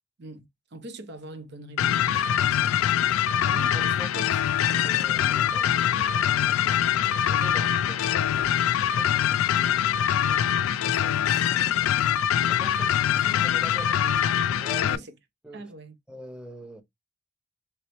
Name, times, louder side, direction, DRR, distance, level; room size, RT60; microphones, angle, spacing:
voice 1, 0.2-2.8 14.8-15.1 15.5-15.9, right 2 dB, 55° right, 0.7 m, -43 dB
sound 1, 1.8-15.0, left 10 dB, 90° left, 0.3 m, -23 dB
sound 2, 3.0-9.9, left 3 dB, 55° left, 0.8 m, -52 dB
voice 2, 3.5-4.4 4.8-10.5 10.8-12.0 12.4-14.2 14.5-15.0 15.4-15.6 16.1-16.8, equal, 5° right, 0.7 m, -44 dB
3.2 x 3.0 x 3.1 m
head